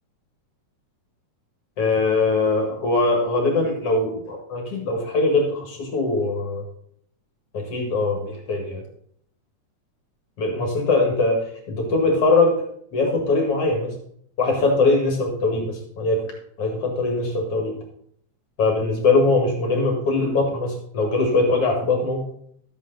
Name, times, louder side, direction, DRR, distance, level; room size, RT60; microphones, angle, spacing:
voice 1, 1.8-6.6 7.5-8.8 10.4-11.4 11.7-12.6 12.9-13.9 14.4-16.2 16.6-17.7 18.6-22.2, left 3 dB, 55° left, 2 dB, 2.8 m, -21 dB
12.5 x 8.3 x 4.0 m, 0.66 s
omnidirectional pair, 3.3 m